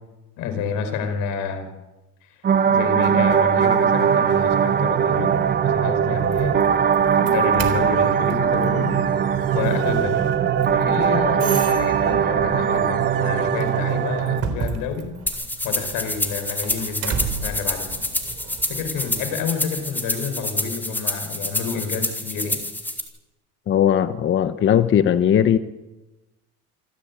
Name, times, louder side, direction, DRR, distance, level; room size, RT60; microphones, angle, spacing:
voice 1, 0.4-1.7 2.7-5.4 5.6-6.7 7.2-9.0 9.5-10.2 10.7-15.1 15.6-17.9 18.7-22.6, left 6 dB, 85° left, 8 dB, 5.2 m, -29 dB
sound 1, 2.4-14.4, right 8 dB, 35° right, 1.1 m, -20 dB
Doorbell, 6.1-19.3, right 6 dB, 50° right, 3.8 m, -35 dB
sound 2, 15.3-23.0, left 1 dB, 5° left, 2.9 m, -27 dB
voice 2, 23.7-25.6, left 9 dB, 40° left, 11 dB, 0.9 m, -18 dB
27.0 x 15.5 x 8.6 m, 1.1 s
cardioid pair, 150°, 31 cm